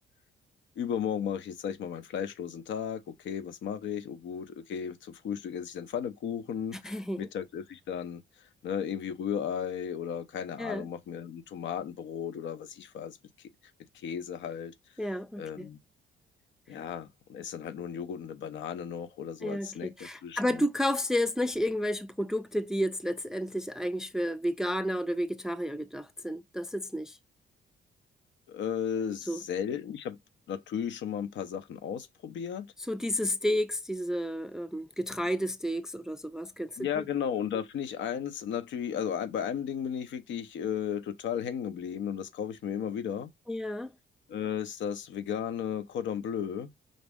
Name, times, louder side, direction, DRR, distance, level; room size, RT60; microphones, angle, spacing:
voice 1, 0.8-13.5 13.9-14.7 15.4-15.8 16.7-19.9 20.2-20.6 28.5-30.2 30.5-32.7 36.8-43.3 44.3-46.7, left 8 dB, 70° left, 0.6 m, -35 dB
voice 2, 6.8-7.3 10.6-10.9 15.0-15.7 19.4-27.2 29.3-29.4 32.9-37.0 43.5-43.9, equal, 5° right, 0.3 m, -31 dB
5.2 x 2.0 x 3.5 m
cardioid pair, 90°, 20 cm